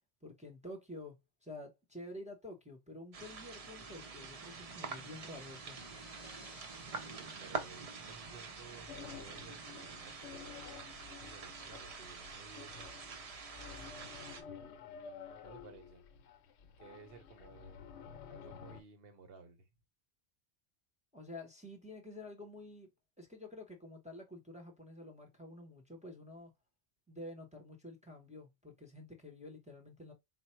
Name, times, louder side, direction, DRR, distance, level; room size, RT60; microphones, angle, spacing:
voice 1, 0.2-5.8 21.1-22.9 23.2-26.5 27.1-30.1, left 1 dB, 5° right, 0.7 m, -49 dB
sound 1, 3.1-14.4, right 4 dB, 45° right, 0.5 m, -46 dB
sound 2, 4.0-10.8, left 2 dB, 20° left, 1.0 m, -63 dB
voice 2, 7.1-14.4 15.4-16.2 16.8-17.8 18.3-19.7, right 4 dB, 60° right, 0.9 m, -57 dB
sound 3, 8.9-18.8, left 7 dB, 70° left, 0.8 m, -52 dB
4.2 x 2.0 x 4.3 m
omnidirectional pair, 1.2 m